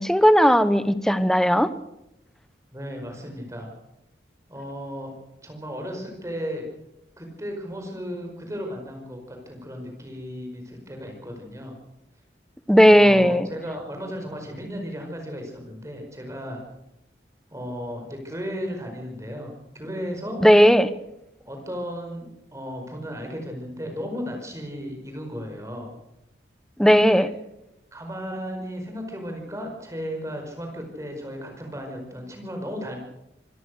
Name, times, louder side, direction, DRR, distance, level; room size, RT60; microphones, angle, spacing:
voice 1, 0.0-1.7 12.7-13.5 20.4-20.9 26.8-27.3, equal, 5° left, 13 dB, 0.9 m, -16 dB
voice 2, 2.7-3.7 4.5-5.1 5.4-6.7 7.2-11.8 12.9-16.6 17.5-20.4 21.5-25.9 27.0-27.3 27.9-33.0, equal, 15° right, 3 dB, 5.0 m, -35 dB
26.0 x 17.0 x 6.5 m, 0.86 s
head